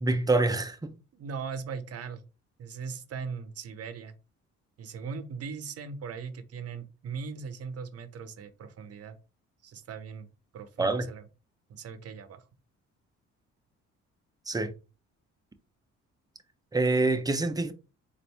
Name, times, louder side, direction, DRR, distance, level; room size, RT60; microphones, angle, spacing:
voice 1, 0.0-1.0 10.8-11.1 14.5-14.7 16.7-17.7, right 2 dB, 10° right, 0.6 m, -26 dB
voice 2, 1.1-2.2 2.6-4.2 4.8-9.2 9.6-11.3 11.7-12.4, right 5 dB, 55° right, 0.8 m, -39 dB
4.1 x 2.6 x 3.3 m
cardioid pair, 90°, 30 cm